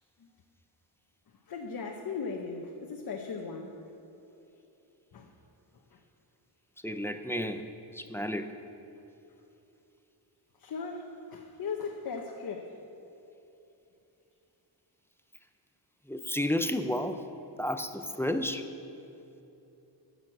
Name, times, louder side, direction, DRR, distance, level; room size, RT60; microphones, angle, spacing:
voice 1, 1.5-3.8 5.1-5.3 5.9-6.0 10.6-12.7, left 5 dB, 55° left, 2 dB, 1.0 m, -38 dB
voice 2, 6.8-7.6 7.9-8.5 16.1-17.2 17.6-18.6, left 1 dB, 5° left, 7 dB, 0.4 m, -31 dB
14.5 x 6.6 x 7.4 m, 2.9 s
wide cardioid pair, 140°, 42 cm